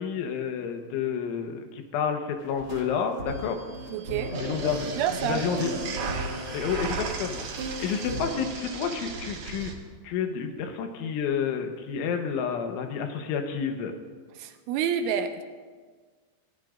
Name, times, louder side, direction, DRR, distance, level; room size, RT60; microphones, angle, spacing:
voice 1, 0.0-3.6 4.4-4.9 5.2-5.7 6.5-9.7 10.0-13.9, left 7 dB, 75° left, 5 dB, 3.4 m, -30 dB
sound 1, 2.4-8.4, right 1 dB, 40° right, 2.0 m, -36 dB
voice 2, 3.9-4.4 5.0-5.4 14.4-15.4, right 8 dB, 80° right, 7 dB, 3.1 m, -28 dB
sound 2, 4.3-9.7, right 5 dB, 65° right, 3.6 m, -36 dB
28.0 x 17.0 x 2.5 m, 1.5 s
omnidirectional pair, 5.8 m